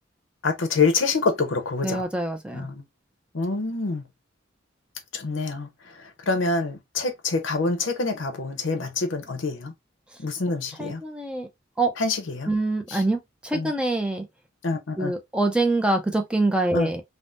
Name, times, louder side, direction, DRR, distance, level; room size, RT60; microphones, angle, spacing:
voice 1, 0.4-2.0 2.5-2.8 3.3-4.0 5.1-5.7 6.3-9.7 10.2-11.0 12.0-12.5 12.9-13.0 13.5-13.7 14.6-15.1 16.7-16.9, left 3 dB, 70° left, 0.7 m, -26 dB
voice 2, 1.8-2.7 10.8-11.5 11.8-11.9 12.5-14.3 15.0-17.0, right 2 dB, 5° right, 0.4 m, -25 dB
3.4 x 2.1 x 2.4 m
head